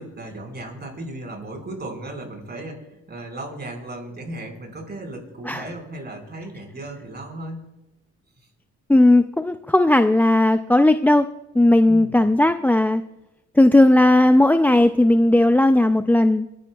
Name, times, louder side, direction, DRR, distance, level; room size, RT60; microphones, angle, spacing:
voice 1, 0.0-7.6 8.4-8.5 11.8-12.2, right 1 dB, 35° right, 2 dB, 4.8 m, -36 dB
voice 2, 8.9-11.3 11.5-13.0 13.5-16.5, left 1 dB, 5° left, 9 dB, 0.4 m, -16 dB
29.0 x 10.5 x 2.3 m, 0.99 s
cardioid pair, 90°, 30 cm